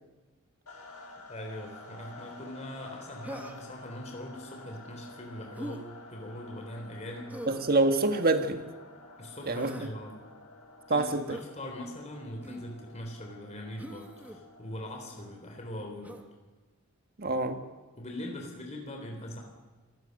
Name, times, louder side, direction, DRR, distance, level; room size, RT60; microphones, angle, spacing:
sound 1, 0.7-15.4, left 2 dB, 85° left, 7.5 m, -51 dB
voice 1, 1.3-7.4 9.2-10.2 10.9-16.2 18.0-19.4, left 1 dB, 30° left, 3.6 m, -41 dB
Human voice, 3.2-3.8 5.5-5.8 7.3-7.7 9.3-9.9 11.3-11.5 12.4-12.7 13.8-14.4 16.0-16.3, equal, 5° right, 1.5 m, -43 dB
voice 2, 7.5-8.6 9.5-9.7 10.9-11.4 17.2-17.6, right 2 dB, 45° right, 1.7 m, -26 dB
27.0 x 17.5 x 6.6 m
head